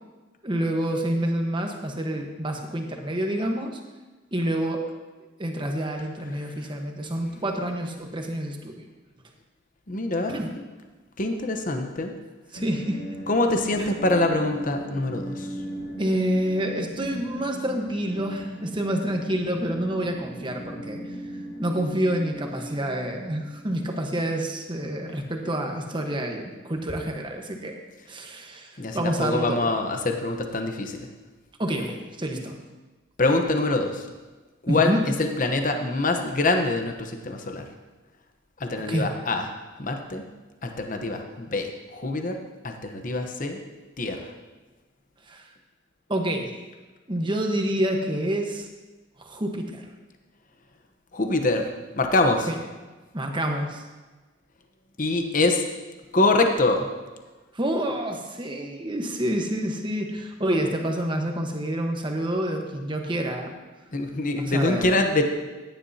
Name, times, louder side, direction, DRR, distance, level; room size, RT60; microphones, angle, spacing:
voice 1, 0.4-3.8 4.3-4.8 5.4-8.8 10.3-10.5 12.5-13.0 13.8-13.9 16.0-21.0 21.6-27.7 28.1-29.7 31.6-32.6 34.7-35.0 38.9-39.1 45.3-45.5 46.1-46.5 47.1-48.7 49.2-49.8 52.5-52.6 53.1-53.8 57.5-63.5 64.4-65.0, right 1 dB, 25° right, 3 dB, 1.2 m, -28 dB
voice 2, 9.9-10.3 11.2-12.1 13.3-15.3 28.8-30.9 33.2-34.0 34.6-34.9 35.2-37.6 38.6-39.4 39.8-40.2 40.6-41.7 41.9-42.4 42.6-43.6 44.0-44.2 51.1-51.6 51.9-52.5 55.0-55.6 56.1-56.9 63.9-65.3, left 2 dB, 45° left, 5 dB, 0.9 m, -24 dB
sound 1, 12.5-24.5, right 1 dB, 80° left, 1.3 m, -38 dB
15.5 x 10.5 x 2.8 m, 1.2 s
head